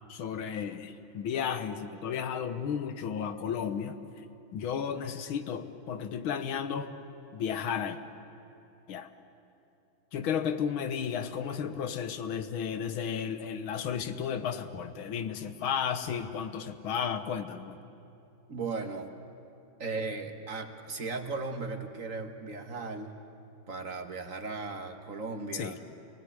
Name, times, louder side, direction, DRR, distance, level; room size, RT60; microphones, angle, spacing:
voice 1, 0.1-4.0 4.5-6.9 7.3-8.0 8.9-9.1 10.1-17.8 25.5-25.8, left 7 dB, 90° left, 10 dB, 1.9 m, -33 dB
voice 2, 18.5-19.1 19.8-23.2 23.7-25.7, right 4 dB, 45° right, 6 dB, 1.6 m, -36 dB
28.0 x 20.0 x 9.7 m, 2.8 s
omnidirectional pair, 2.2 m